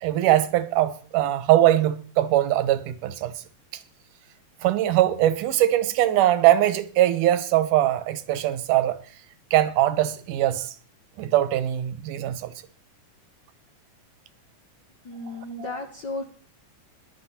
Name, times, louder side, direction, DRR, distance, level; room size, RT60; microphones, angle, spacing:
voice 1, 0.0-3.3 4.6-9.0 9.5-10.7 11.2-12.5, right 13 dB, 90° right, 2.4 m, -21 dB
voice 2, 15.0-16.3, left 2 dB, 50° left, 1.3 m, -34 dB
17.0 x 11.5 x 4.2 m
omnidirectional pair, 3.6 m